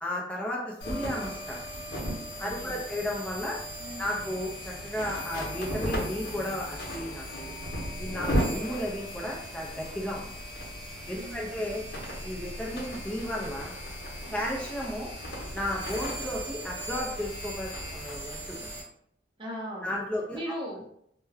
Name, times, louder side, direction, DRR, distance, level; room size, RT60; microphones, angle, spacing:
voice 1, 0.0-1.6 2.4-3.6 4.0-7.5 8.0-10.3 11.1-11.8 12.2-13.7 14.3-15.1 15.5-18.7 19.8-20.4, left 1 dB, 5° left, -3 dB, 0.5 m, -34 dB
sound 1, 0.8-18.8, equal, 65° left, 0.9 m, -36 dB
voice 2, 2.4-2.8 3.8-4.3 11.1-11.6 14.2-14.5 19.4-20.0 20.3-20.9, equal, 30° right, -3 dB, 0.7 m, -40 dB
2.2 x 2.2 x 3.3 m, 0.71 s
head